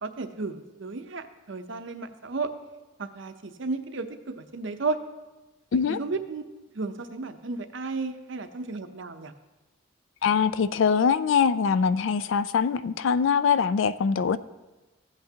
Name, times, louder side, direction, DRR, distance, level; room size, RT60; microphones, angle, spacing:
voice 1, 0.0-2.5 3.0-5.0 5.9-6.4 6.7-9.3, right 3 dB, 60° right, 8 dB, 0.7 m, -33 dB
voice 2, 10.2-14.4, left 6 dB, 65° left, 15 dB, 0.3 m, -23 dB
14.5 x 8.1 x 2.8 m, 1.1 s
head